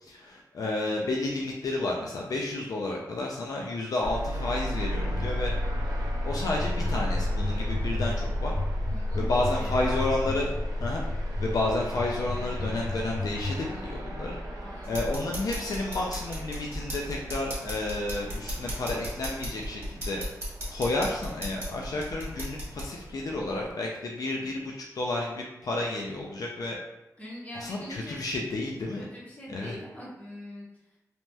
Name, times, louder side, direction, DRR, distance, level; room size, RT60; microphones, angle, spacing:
voice 1, 0.0-5.5 6.2-8.5 9.2-10.5 10.8-11.0 11.4-14.4 14.9-20.3 20.7-26.8 27.6-29.0 29.5-29.7, left 2 dB, 70° left, -1 dB, 0.4 m, -31 dB
sound 1, 4.0-23.7, left 1 dB, 80° right, 0.5 m, -34 dB
sound 2, 5.1-13.5, left 2 dB, 55° right, 0.9 m, -34 dB
voice 2, 8.9-10.6 14.6-15.1 27.2-28.2 28.9-31.0, equal, 20° left, -6 dB, 1.0 m, -43 dB
sound 3, 14.8-22.9, equal, 40° right, 1.4 m, -37 dB
3.0 x 2.9 x 2.2 m, 0.98 s
wide cardioid pair, 110°, 7 cm